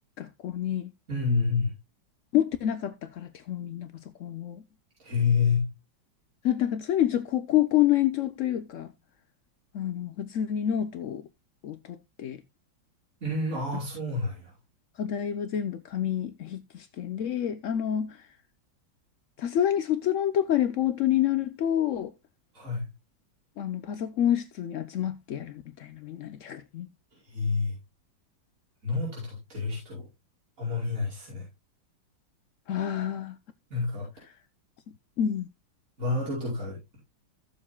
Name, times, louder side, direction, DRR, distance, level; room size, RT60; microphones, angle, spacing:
voice 1, 0.2-0.9 2.3-4.6 6.4-8.9 9.7-11.3 11.6-12.4 15.0-18.3 19.4-22.1 23.6-26.9 32.7-33.4 35.2-35.5, left 11 dB, 70° left, 0.7 m, -28 dB
voice 2, 1.1-1.7 5.0-5.7 13.2-14.5 22.5-22.8 27.3-27.7 28.8-30.0 30.6-31.4 33.7-34.1 36.0-37.0, left 4 dB, 40° right, 5.9 m, -28 dB
15.5 x 7.1 x 2.2 m
omnidirectional pair, 2.1 m